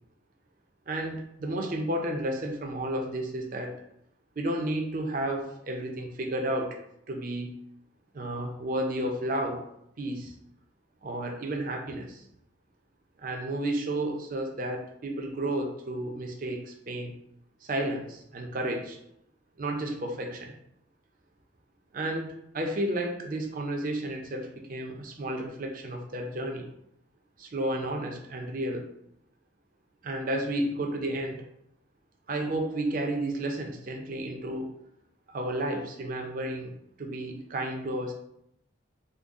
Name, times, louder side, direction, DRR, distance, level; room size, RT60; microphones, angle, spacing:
voice 1, 0.9-3.7 4.4-6.8 7.1-7.5 8.1-9.6 10.0-10.3 11.0-12.2 13.2-17.1 17.6-19.0 19.6-20.5 21.9-26.7 27.4-28.9 30.0-31.4 32.3-34.7 35.3-38.1, right 1 dB, 45° right, 2 dB, 0.5 m, -32 dB
3.8 x 2.0 x 3.5 m, 0.77 s
head